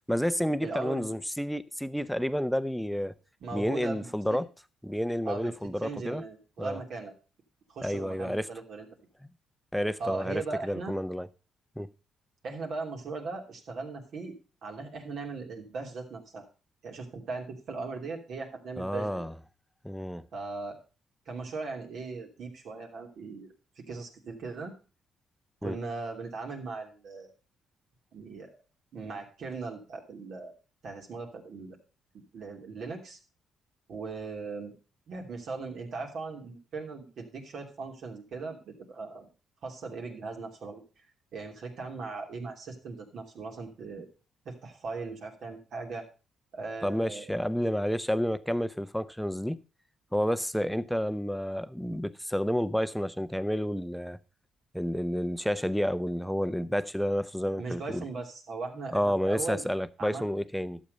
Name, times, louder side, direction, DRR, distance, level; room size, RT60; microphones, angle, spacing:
voice 1, 0.1-3.1 3.5-4.5 4.8-6.2 6.6-6.8 7.8-8.5 9.7-11.3 11.8-11.9 18.8-19.3 19.8-20.2 25.6-25.8 46.8-49.6 50.1-54.2 54.7-58.1 58.9-60.8, equal, ahead, 0.7 m, -30 dB
voice 2, 0.6-1.1 3.4-4.4 5.2-5.5 5.8-7.1 7.7-8.9 10.0-11.0 12.4-16.5 16.8-19.3 20.3-20.8 21.3-23.5 23.9-24.7 25.6-27.3 28.1-28.6 28.9-30.5 30.8-31.8 32.3-33.2 33.9-34.7 35.1-39.3 39.6-40.8 41.3-44.1 44.4-46.1 46.5-47.3 57.6-59.6 60.0-60.2, right 4 dB, 65° right, 2.9 m, -38 dB
12.0 x 7.4 x 5.3 m
cardioid pair, 90°, 0 cm